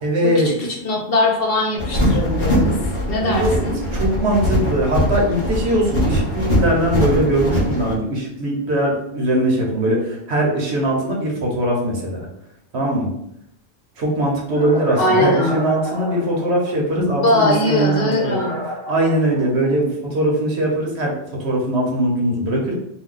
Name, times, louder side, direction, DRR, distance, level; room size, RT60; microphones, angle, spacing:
voice 1, 0.0-0.5 3.2-3.6 3.9-12.3 12.7-13.1 14.0-18.4 18.9-21.1 21.4-22.8, right 1 dB, 80° right, -2 dB, 1.1 m, -20 dB
voice 2, 0.8-2.7 3.1-3.8 15.0-15.5 16.9-18.5, left 2 dB, 60° left, -1 dB, 0.9 m, -20 dB
sound 1, 1.8-7.9, equal, 30° left, 0.9 m, -21 dB
sound 2, 14.5-16.9 17.5-19.9, right 1 dB, 40° right, 0.4 m, -30 dB
2.7 x 2.2 x 3.7 m, 0.78 s
omnidirectional pair, 1.1 m